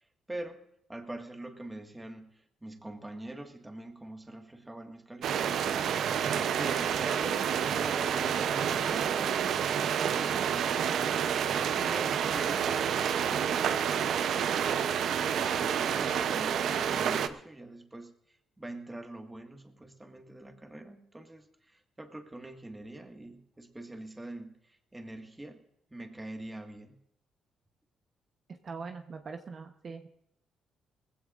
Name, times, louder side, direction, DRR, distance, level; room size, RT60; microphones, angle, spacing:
voice 1, 0.3-0.6 0.9-9.3 9.8-14.8 15.3-25.6 25.9-27.0, right 1 dB, 15° right, 4 dB, 1.8 m, -44 dB
sound 1, 5.2-17.3, right 8 dB, 70° right, 0.8 m, -29 dB
voice 2, 28.5-30.1, right 4 dB, 45° right, 5 dB, 1.0 m, -42 dB
19.5 x 15.5 x 2.6 m, 0.76 s
cardioid pair, 90°, 0 cm